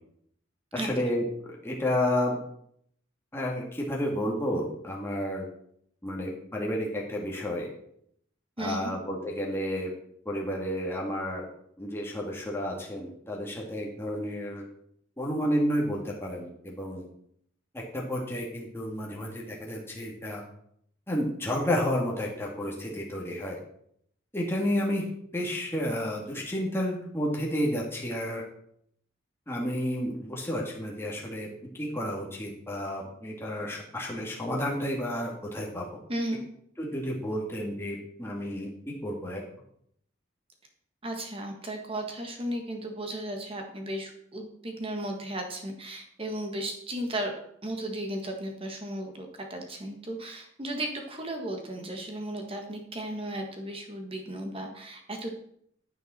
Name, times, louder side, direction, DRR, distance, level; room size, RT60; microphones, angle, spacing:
voice 1, 0.7-2.4 3.3-5.5 6.0-7.7 8.6-9.9 10.3-11.5 11.8-14.7 15.2-17.1 17.7-20.4 21.1-23.6 24.3-25.0 25.3-28.4 29.5-31.5 31.8-35.8 36.8-39.4, equal, 10° left, -3 dB, 2.0 m, -31 dB
voice 2, 8.6-8.9 36.1-36.4 41.0-47.3 47.6-55.3, right 1 dB, 30° right, 3 dB, 1.6 m, -35 dB
9.3 x 9.0 x 4.3 m, 0.69 s
head